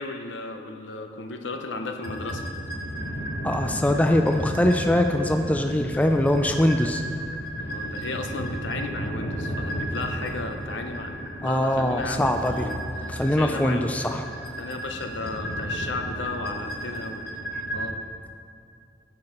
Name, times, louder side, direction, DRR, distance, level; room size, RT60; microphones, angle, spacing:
voice 1, 0.0-2.4 3.8-4.1 7.6-13.9 14.6-17.2 17.7-18.0, left 3 dB, 85° left, 5 dB, 0.7 m, -35 dB
sound 1, 2.0-17.9, right 1 dB, 60° left, 1.1 m, -33 dB
voice 2, 3.4-7.0 11.4-12.7 13.1-14.2, left 1 dB, 10° left, 5 dB, 0.3 m, -22 dB
10.5 x 6.7 x 4.3 m, 2.4 s
head